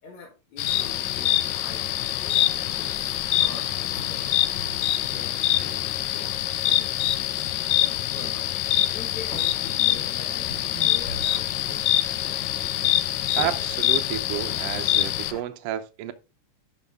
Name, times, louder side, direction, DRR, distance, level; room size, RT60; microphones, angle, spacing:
voice 1, 0.0-3.1 3.4-7.0 7.7-8.6 8.9-11.9, left 4 dB, 70° left, 3.4 m, -44 dB
sound 1, 0.6-15.3, left 14 dB, 90° left, 2.1 m, -25 dB
sound 2, 0.7-15.4, left 5 dB, 55° left, 1.4 m, -41 dB
sound 3, 0.8-15.1, left 2 dB, 35° left, 2.9 m, -45 dB
voice 2, 13.4-16.1, right 11 dB, 65° right, 1.7 m, -31 dB
11.5 x 5.8 x 3.6 m
omnidirectional pair, 3.4 m